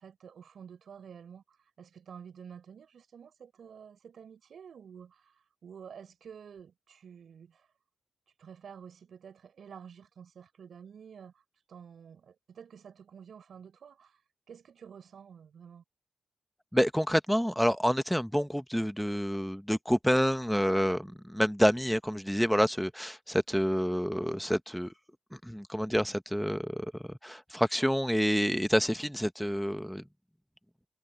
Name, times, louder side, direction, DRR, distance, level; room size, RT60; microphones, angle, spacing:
voice 1, 0.0-7.7 8.4-11.4 11.7-14.2 14.5-15.8, right 7 dB, 80° right, 5.4 m, -50 dB
voice 2, 16.7-24.9 25.4-26.9 27.2-30.0, equal, ahead, 1.1 m, -28 dB
cardioid pair, 75°, 0 cm